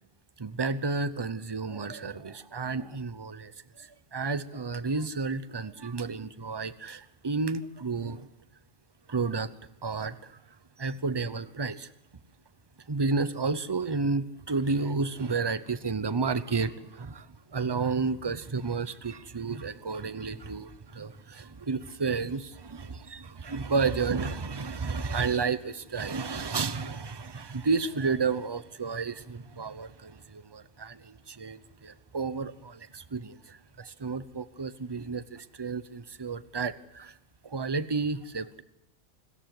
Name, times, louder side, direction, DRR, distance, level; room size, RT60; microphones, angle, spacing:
voice 1, 0.4-8.3 9.1-9.5 9.8-10.4 10.8-11.9 12.9-37.1 37.4-38.6, right 4 dB, 25° right, 14 dB, 0.8 m, -31 dB
25.0 x 14.0 x 7.8 m, 0.83 s
omnidirectional pair, 1.2 m